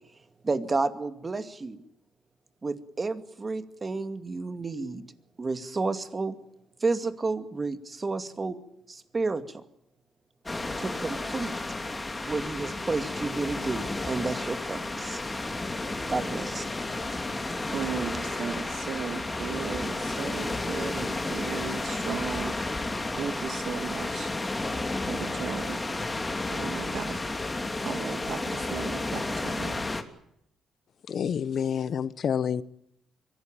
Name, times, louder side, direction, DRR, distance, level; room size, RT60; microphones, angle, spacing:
voice 1, 0.4-1.8 2.6-5.0 5.4-6.4 6.8-8.6 8.9-9.6 10.8-11.5 12.3-15.2 16.1-17.2, right 3 dB, 30° right, 2.3 m, -31 dB
sound 1, 10.5-30.0, left 2 dB, 15° left, 2.9 m, -32 dB
voice 2, 17.7-24.3 25.1-25.9 26.5-27.2 27.8-29.8, right 7 dB, 65° right, 2.8 m, -36 dB
voice 3, 31.1-32.6, left 7 dB, 55° left, 1.1 m, -28 dB
24.5 x 17.5 x 9.0 m
cardioid pair, 90°, 0 cm